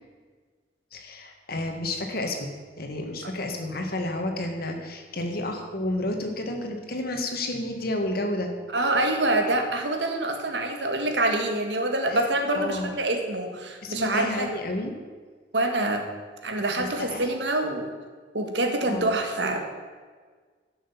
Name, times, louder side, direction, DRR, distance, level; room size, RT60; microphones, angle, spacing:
voice 1, 0.9-2.5 2.8-8.5 12.1-12.2 12.5-12.9 13.8-14.9 16.8-17.3 18.8-19.2, left 1 dB, 60° left, 3 dB, 1.7 m, -31 dB
voice 2, 8.7-14.5 15.5-16.1 16.4-17.9 18.3-19.7, right 2 dB, 80° right, 4 dB, 1.6 m, -26 dB
12.5 x 6.4 x 7.1 m, 1.5 s
head